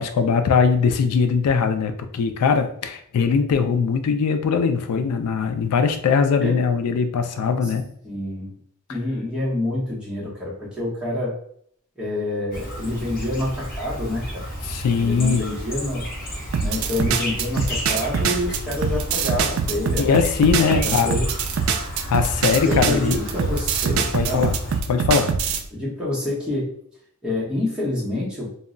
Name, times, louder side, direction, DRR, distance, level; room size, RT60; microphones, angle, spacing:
voice 1, 0.0-7.9 14.7-15.4 20.0-21.1 22.1-23.2 24.1-24.6 24.9-25.3, left 5 dB, 90° left, 8 dB, 0.3 m, -21 dB
voice 2, 8.0-8.5 8.9-11.3 12.0-14.4 15.0-16.0 16.6-20.2 20.8-21.3 22.6-24.4 25.7-26.7 27.2-28.6, left 1 dB, 5° right, -7 dB, 0.8 m, -27 dB
Chirp tweet, 12.5-24.8, equal, 40° left, 0.6 m, -32 dB
sound 1, 16.5-25.6, right 6 dB, 60° right, 0.3 m, -24 dB
2.2 x 2.0 x 3.7 m, 0.65 s
head